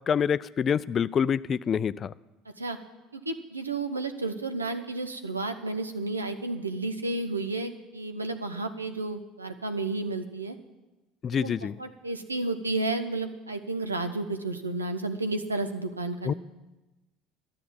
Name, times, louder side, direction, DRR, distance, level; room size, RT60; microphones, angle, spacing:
voice 1, 0.1-2.1 11.2-11.7 16.2-16.3, left 7 dB, 35° left, 18 dB, 0.4 m, -26 dB
voice 2, 3.1-10.6 11.4-16.3, right 2 dB, 90° right, 8 dB, 0.8 m, -32 dB
13.0 x 7.7 x 8.6 m, 1.1 s
figure-of-eight pair, 65°, 0 cm